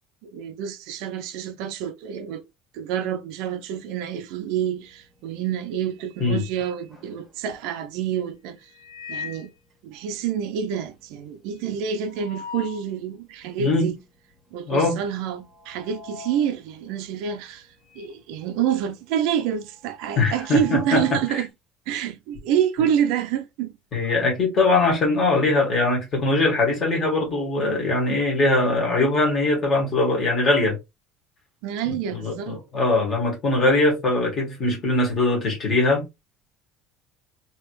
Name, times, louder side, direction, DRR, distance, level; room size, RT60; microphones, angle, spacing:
voice 1, 0.2-2.4 2.7-8.7 9.1-9.5 9.8-14.0 14.5-17.7 18.0-21.5 21.9-23.7 31.6-32.6, right 9 dB, 70° right, 0.5 m, -27 dB
sound 1, 4.8-5.2 5.6-7.7 8.6-9.6 10.0-10.1 10.3-10.4 10.8-12.9 13.4-13.5 14.3-14.6 14.9-18.2 18.5-21.4, left 4 dB, 5° left, 1.8 m, -42 dB
voice 2, 14.7-15.0 20.2-21.0 21.3-21.4 23.9-30.8 31.9-36.0, left 2 dB, 25° left, 1.7 m, -21 dB
3.3 x 2.8 x 3.1 m
cardioid pair, 170°, 0 cm